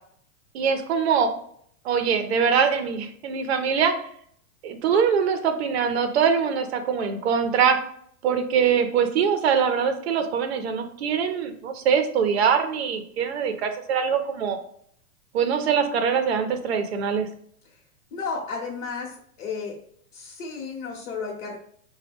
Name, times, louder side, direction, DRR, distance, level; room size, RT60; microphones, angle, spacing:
voice 1, 0.5-1.3 1.8-3.9 4.6-7.8 8.2-14.6 15.3-17.3, right 7 dB, 50° right, 7 dB, 0.5 m, -23 dB
voice 2, 18.1-19.7 20.1-21.6, left 4 dB, 65° left, -2 dB, 1.0 m, -33 dB
4.9 x 2.2 x 3.4 m, 0.64 s
supercardioid pair, 170°, 42 cm